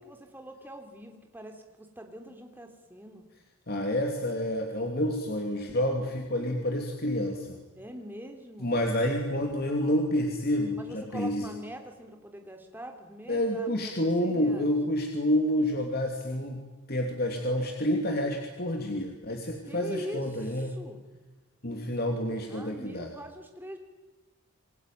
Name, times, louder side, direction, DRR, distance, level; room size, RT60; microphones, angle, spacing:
voice 1, 0.0-3.2 7.7-8.7 10.7-14.7 19.7-21.0 22.5-23.8, equal, 10° right, 3 dB, 3.3 m, -43 dB
voice 2, 3.7-7.6 8.6-11.5 13.3-16.6 16.9-20.7 21.6-23.1, left 1 dB, 45° left, 2 dB, 2.9 m, -28 dB
27.5 x 22.5 x 9.3 m, 1.2 s
head